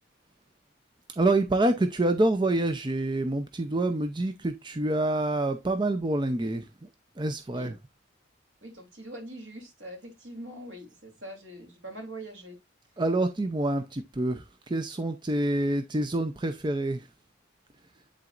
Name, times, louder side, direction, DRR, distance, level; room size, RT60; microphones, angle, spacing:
voice 1, 1.2-6.9 7.2-7.7 13.0-17.1, right 2 dB, 20° right, 0.5 m, -27 dB
voice 2, 8.6-12.6, right 1 dB, 80° right, 3.1 m, -43 dB
10.5 x 4.0 x 2.4 m
head